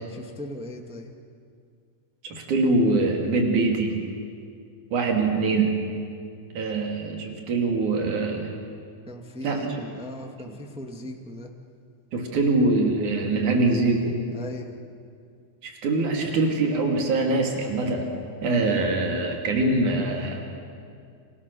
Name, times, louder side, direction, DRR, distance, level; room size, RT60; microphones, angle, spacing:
voice 1, 0.1-1.1 9.1-11.5 14.3-14.8, left 1 dB, 5° right, 2 dB, 1.1 m, -38 dB
voice 2, 2.2-4.0 4.9-5.8 6.5-8.5 9.4-9.8 10.5-10.6 12.1-14.2 15.6-18.1 18.4-20.4, right 3 dB, 75° right, 1 dB, 4.4 m, -23 dB
29.0 x 27.5 x 6.9 m, 2.3 s
omnidirectional pair, 3.5 m